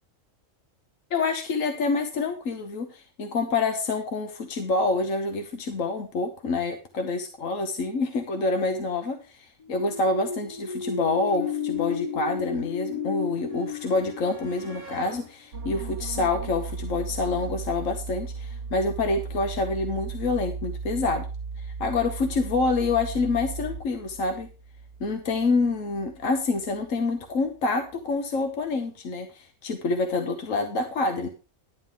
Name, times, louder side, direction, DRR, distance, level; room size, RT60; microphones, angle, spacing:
voice 1, 1.1-21.3 21.6-24.5 25.0-31.3, left 3 dB, 85° left, 6 dB, 1.5 m, -27 dB
sound 1, 9.6-15.3, left 6 dB, 50° left, 0.5 m, -33 dB
sound 2, 11.3-17.2 18.4-18.5 18.8-18.9, right 1 dB, 70° left, 7.1 m, -51 dB
sound 3, 15.5-26.9 27.2-27.5, right 4 dB, 70° right, 1.1 m, -36 dB
11.0 x 10.5 x 3.5 m, 0.32 s
omnidirectional pair, 1.3 m